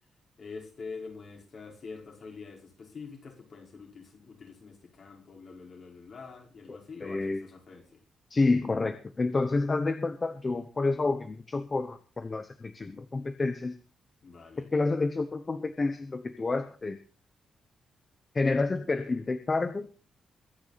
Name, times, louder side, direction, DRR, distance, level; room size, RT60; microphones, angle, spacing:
voice 1, 0.4-8.0 14.2-14.7, left 4 dB, 40° left, 1 dB, 4.9 m, -45 dB
voice 2, 6.7-7.4 8.3-13.7 14.7-17.0 18.3-19.9, left 3 dB, 20° left, 9 dB, 0.9 m, -29 dB
23.0 x 9.7 x 4.1 m, 0.36 s
wide cardioid pair, 180°, 0 cm